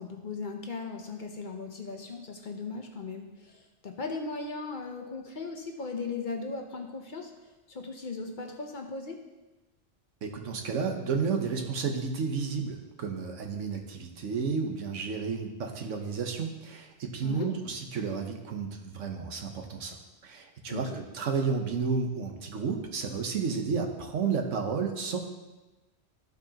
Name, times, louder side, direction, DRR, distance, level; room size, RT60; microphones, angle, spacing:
voice 1, 0.0-7.3 7.7-9.2 17.2-17.5 20.7-21.0, left 4 dB, 45° left, 3 dB, 0.9 m, -37 dB
voice 2, 10.2-25.2, right 5 dB, 85° right, 3 dB, 1.3 m, -32 dB
13.5 x 4.7 x 2.9 m, 1.1 s
omnidirectional pair, 1.3 m